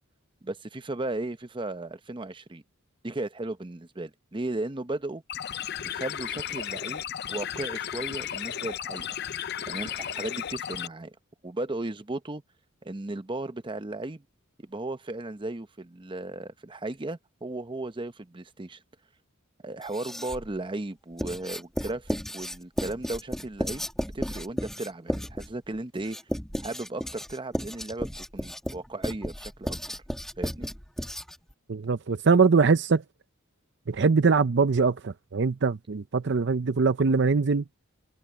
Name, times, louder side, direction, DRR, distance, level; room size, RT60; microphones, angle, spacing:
voice 1, 0.4-2.6 3.0-5.2 5.8-7.0 7.3-9.1 9.7-11.1 11.4-12.4 12.8-14.2 14.6-18.8 19.6-23.9 24.1-26.2 26.6-29.8 30.4-30.7, right 2 dB, 25° right, 0.8 m, -35 dB
sound 1, 5.3-10.9, left 10 dB, 50° left, 0.5 m, -34 dB
Writing, 19.8-20.5 21.2-31.5, equal, ahead, 1.2 m, -34 dB
voice 2, 31.7-33.0 33.9-37.6, right 4 dB, 55° right, 0.6 m, -22 dB
head